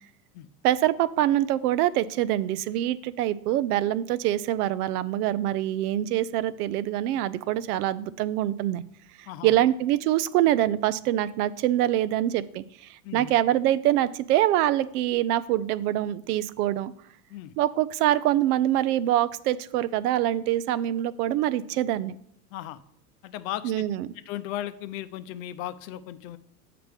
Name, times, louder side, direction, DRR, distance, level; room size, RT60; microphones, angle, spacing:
voice 1, 0.6-8.8 9.4-16.9 17.6-22.1 23.6-24.1, right 13 dB, 75° right, 16 dB, 0.6 m, -25 dB
voice 2, 9.3-9.6 13.0-13.3 17.3-17.5 22.5-22.8 23.2-23.9 24.1-26.4, left 12 dB, 60° left, 14 dB, 0.6 m, -36 dB
7.6 x 5.8 x 3.5 m, 0.67 s
supercardioid pair, 120°, 47 cm